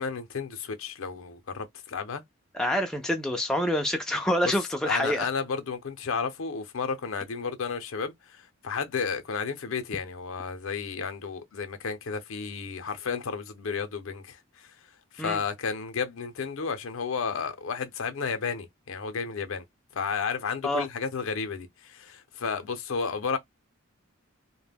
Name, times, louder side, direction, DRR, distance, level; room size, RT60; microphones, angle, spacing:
voice 1, 0.0-2.2 4.9-8.1 8.6-14.4 15.1-19.6 19.9-23.4, left 5 dB, 70° left, 0.5 m, -32 dB
voice 2, 2.5-5.3 15.2-15.4 20.6-20.9, left 1 dB, 5° left, 0.3 m, -27 dB
2.1 x 2.1 x 3.3 m
head